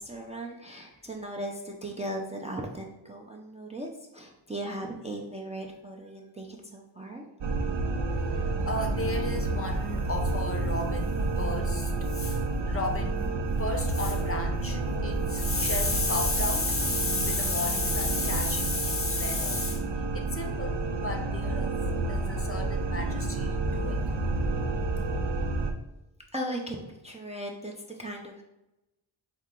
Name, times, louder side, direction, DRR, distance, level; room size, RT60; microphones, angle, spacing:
voice 1, 0.0-7.3 26.3-28.4, right 1 dB, 15° right, -1 dB, 0.5 m, -37 dB
sound 1, 7.4-25.7, right 2 dB, 60° right, 0.6 m, -29 dB
voice 2, 8.4-13.3 13.6-21.8 22.1-24.0, left 2 dB, 30° left, 3 dB, 0.6 m, -32 dB
4.4 x 2.8 x 3.7 m, 0.94 s
wide cardioid pair, 90°, 48 cm